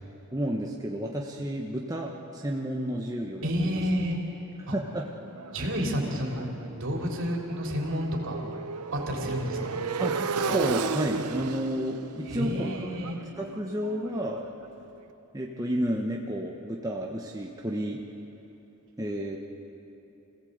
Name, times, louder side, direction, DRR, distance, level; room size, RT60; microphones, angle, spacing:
voice 1, 0.3-3.8 4.6-5.1 10.0-12.7 13.4-14.4 15.3-18.0 19.0-19.4, equal, 15° right, -1 dB, 1.2 m, -31 dB
voice 2, 3.4-4.2 4.7-4.8 5.5-8.4 8.9-9.8 12.2-13.2, equal, 60° right, 0 dB, 3.4 m, -30 dB
Motorcycle, 5.0-14.8, right 5 dB, 90° right, 0.8 m, -35 dB
27.0 x 17.0 x 8.0 m, 3.0 s
head